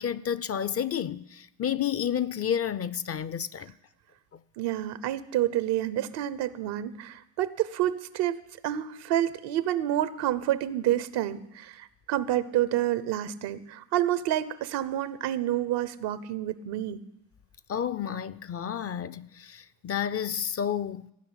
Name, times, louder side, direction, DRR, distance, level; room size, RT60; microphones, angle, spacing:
voice 1, 0.0-3.7 4.3-4.4 17.7-21.1, left 9 dB, 35° left, 0.5 m, -31 dB
voice 2, 4.6-17.0, right 12 dB, 75° right, 0.9 m, -29 dB
15.5 x 5.8 x 9.8 m
supercardioid pair, 75°, 40 cm